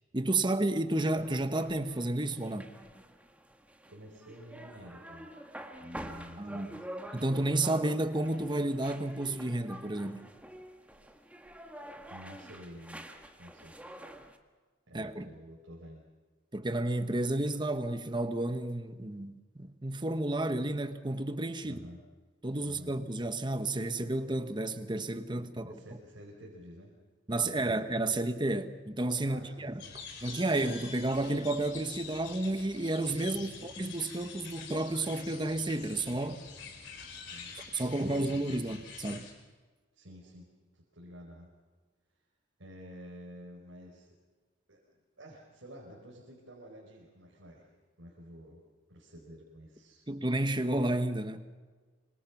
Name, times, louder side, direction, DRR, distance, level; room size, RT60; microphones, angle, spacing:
voice 1, 0.1-2.7 6.4-6.7 7.1-10.3 14.9-15.3 16.5-21.8 22.4-25.8 27.3-29.7 30.2-36.4 37.6-39.3 50.1-51.5, right 2 dB, 25° right, 1.2 m, -31 dB
sound 1, 1.1-14.4, right 1 dB, 5° right, 1.5 m, -47 dB
voice 2, 3.9-5.3 5.8-6.8 11.0-11.2 12.1-13.1 13.4-13.7 14.9-16.0 21.6-22.0 22.6-22.9 25.5-26.9 27.4-27.8 29.2-30.0 33.3-33.6 36.8-38.6 39.9-40.5 40.7-41.5 42.6-44.1 44.7-44.8 45.2-47.7 48.0-48.6 48.9-50.1, equal, 80° right, 4.9 m, -50 dB
sound 2, 29.8-39.3, left 5 dB, 65° left, 4.0 m, -46 dB
26.0 x 25.5 x 6.1 m
head